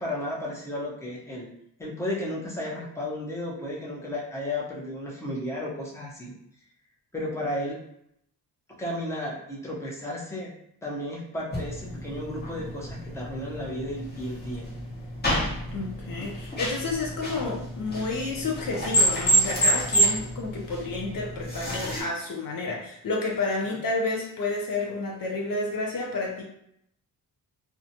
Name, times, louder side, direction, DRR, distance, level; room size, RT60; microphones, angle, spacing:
voice 1, 0.0-1.5 1.8-6.3 7.1-7.8 8.8-10.5 10.8-14.7, left 1 dB, 5° left, -4 dB, 0.7 m, -33 dB
sound 1, 11.5-22.0, right 1 dB, 25° left, 1.0 m, -28 dB
voice 2, 15.7-26.4, left 3 dB, 60° left, 0 dB, 0.6 m, -30 dB
2.4 x 2.1 x 2.8 m, 0.74 s
cardioid pair, 80°, 39 cm